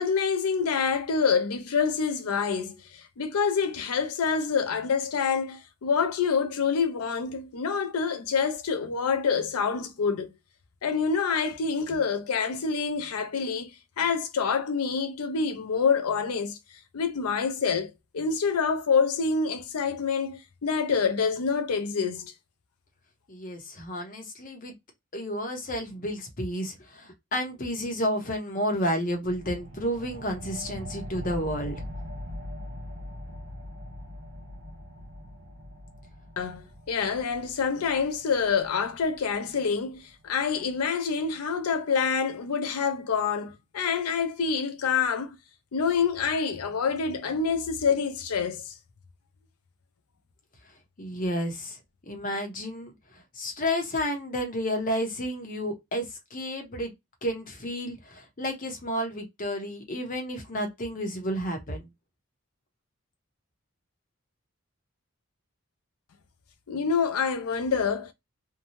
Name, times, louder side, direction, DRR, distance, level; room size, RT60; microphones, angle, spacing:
voice 1, 0.0-10.3 10.8-13.7 14.0-16.6 16.9-22.3 36.4-45.4 45.7-48.7 66.7-68.1, left 5 dB, 90° left, 0.5 m, -27 dB
voice 2, 23.3-24.7 25.1-31.8 51.0-51.8 52.1-52.9 53.3-56.1 56.3-56.9 57.2-61.9, equal, 40° left, 0.8 m, -31 dB
sound 1, 29.2-40.3, equal, 60° right, 0.6 m, -42 dB
2.7 x 2.2 x 2.9 m
head